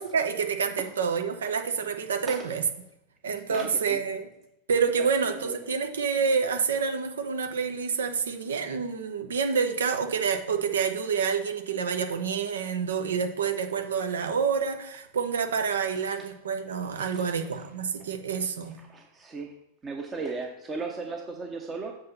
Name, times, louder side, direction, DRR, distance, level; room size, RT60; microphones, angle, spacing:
voice 1, 0.0-2.6 3.2-4.3 4.7-18.8, right 6 dB, 65° right, 6 dB, 0.9 m, -28 dB
voice 2, 3.5-4.0 5.0-5.1 5.4-5.6 17.0-17.3 18.9-19.5 19.8-21.9, right 4 dB, 20° right, 2 dB, 0.9 m, -36 dB
7.8 x 4.1 x 5.5 m, 0.86 s
figure-of-eight pair, 90°, 0 cm